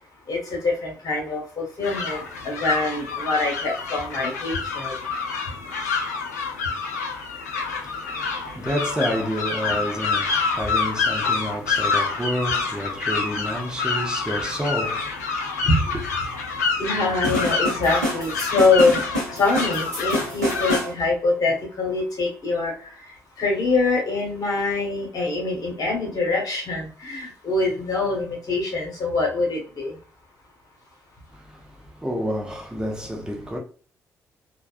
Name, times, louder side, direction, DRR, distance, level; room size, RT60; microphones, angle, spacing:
voice 1, 0.3-4.9 9.7-9.8 15.7-15.8 16.8-19.0 19.4-22.7 23.4-29.9, left 3 dB, 45° left, 1.3 m, -24 dB
sound 1, 1.8-20.8, left 4 dB, 80° left, 0.4 m, -27 dB
voice 2, 7.7-15.3 31.3-31.7 32.0-33.6, equal, 10° right, 0.9 m, -29 dB
sound 2, 17.2-20.9, equal, 85° right, 0.9 m, -27 dB
3.3 x 2.3 x 2.4 m
figure-of-eight pair, 40°, 9 cm